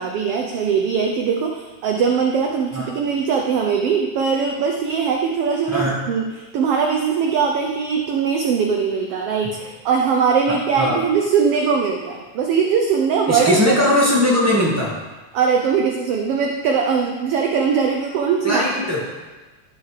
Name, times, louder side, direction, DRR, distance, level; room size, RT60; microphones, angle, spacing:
voice 1, 0.0-6.2 6.5-13.8 15.3-18.6, right 6 dB, 75° right, 2 dB, 1.4 m, -20 dB
voice 2, 5.7-6.0 10.8-11.0 13.3-14.9 18.4-19.0, left 1 dB, 10° right, -5 dB, 0.8 m, -19 dB
13.5 x 4.9 x 4.8 m, 1.2 s
omnidirectional pair, 3.5 m